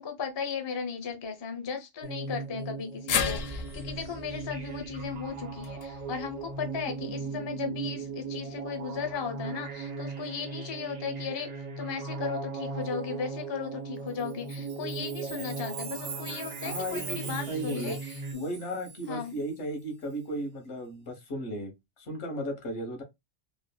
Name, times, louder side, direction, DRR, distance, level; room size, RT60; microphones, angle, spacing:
voice 1, 0.0-11.5 11.8-18.5 19.1-19.4, left 6 dB, 40° left, 0.4 m, -36 dB
sound 1, 2.0-18.3, right 4 dB, 55° right, 0.5 m, -38 dB
sound 2, 3.1-7.3 7.7-7.8 9.0-9.1, left 6 dB, 65° left, 0.7 m, -35 dB
Chime, 14.2-19.3, right 6 dB, 70° right, 1.0 m, -42 dB
voice 2, 16.6-18.0 18.3-21.7 22.0-23.0, equal, 85° left, 1.2 m, -35 dB
3.1 x 2.0 x 2.2 m
omnidirectional pair, 1.2 m